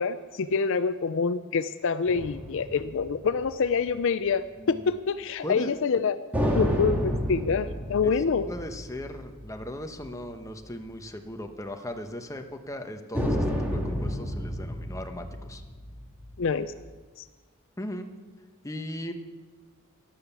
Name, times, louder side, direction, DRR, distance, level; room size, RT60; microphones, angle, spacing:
voice 1, 0.0-6.2 6.5-8.5 16.4-16.7 17.2-17.3, left 5 dB, 60° left, 13 dB, 0.5 m, -26 dB
sound 1, 2.1-4.0 6.3-10.1 10.4-10.5 13.1-16.8, equal, 5° right, 2.3 m, -31 dB
voice 2, 8.4-13.4 13.7-15.6 17.8-18.1 18.6-19.1, left 1 dB, 15° left, 6 dB, 1.0 m, -37 dB
13.0 x 12.0 x 7.0 m, 1.4 s
head